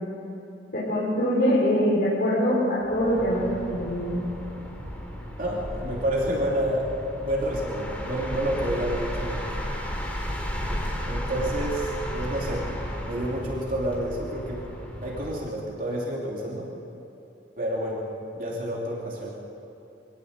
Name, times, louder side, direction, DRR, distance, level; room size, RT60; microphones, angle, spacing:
voice 1, 0.7-4.2, equal, 55° left, -9 dB, 6.0 m, -23 dB
sound 1, 2.8-15.5, equal, 10° left, 4.1 m, -34 dB
voice 2, 5.4-6.8 7.2-9.5 11.1-12.6 13.0-14.7 15.0-16.7 17.6-18.1 18.3-19.3, right 1 dB, 50° right, -3 dB, 3.1 m, -29 dB
24.5 x 17.5 x 8.2 m, 3.0 s
head